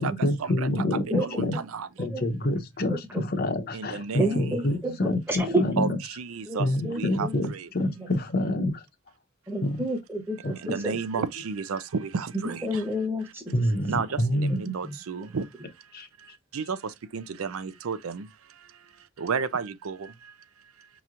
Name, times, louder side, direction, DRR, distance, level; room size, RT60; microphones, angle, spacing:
voice 1, 0.0-1.6 2.0-6.0 6.6-8.8 9.6-9.8 10.4-10.5 13.5-14.6 15.9-16.1 16.5-16.6, left 1 dB, 45° left, 0.7 m, -27 dB
voice 2, 1.2-1.9 3.7-4.5 5.8-5.9 6.2-7.7 10.6-12.6 13.9-15.5 16.2-18.7 19.2-20.3, right 5 dB, 80° right, 0.5 m, -32 dB
voice 3, 4.2-5.6 6.5-7.4 8.0-8.1 9.5-11.2 12.3-13.5 14.5-14.9, right 1 dB, 10° right, 1.0 m, -30 dB
5.4 x 3.0 x 2.5 m
head